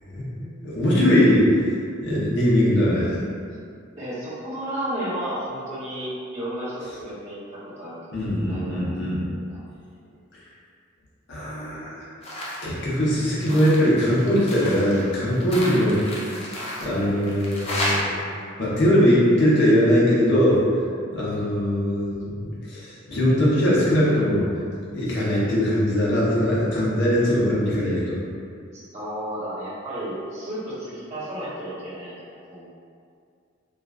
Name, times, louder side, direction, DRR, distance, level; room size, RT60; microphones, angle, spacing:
voice 1, 0.0-1.5 2.0-3.2 8.1-9.2 11.3-12.0 12.6-16.3 16.8-18.2 18.6-20.6 21.1-24.5 24.9-28.2, equal, 60° left, -7 dB, 0.7 m, -21 dB
voice 2, 4.0-8.0 8.5-8.9 9.2-9.6 28.7-32.1 32.5-32.6, right 1 dB, 35° right, -13 dB, 0.9 m, -32 dB
sound 1, 12.2-12.7 13.0-18.0, left 1 dB, 30° left, 0.4 m, -32 dB
2.4 x 2.2 x 2.3 m, 2.3 s
head